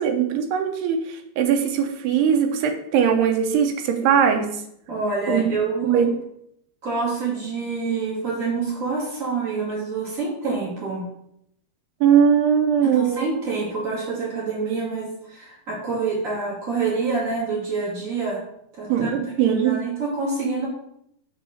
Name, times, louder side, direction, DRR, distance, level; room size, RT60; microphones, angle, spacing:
voice 1, 0.0-4.5 5.3-5.4 5.8-6.1 12.0-13.2 18.9-19.8, right 7 dB, 80° right, 5 dB, 2.8 m, -20 dB
voice 2, 4.9-6.0 6.8-11.0 12.8-18.4 18.7-19.1 19.5-20.7, right 4 dB, 50° right, -5 dB, 0.9 m, -27 dB
6.9 x 3.6 x 6.3 m, 0.74 s
omnidirectional pair, 4.7 m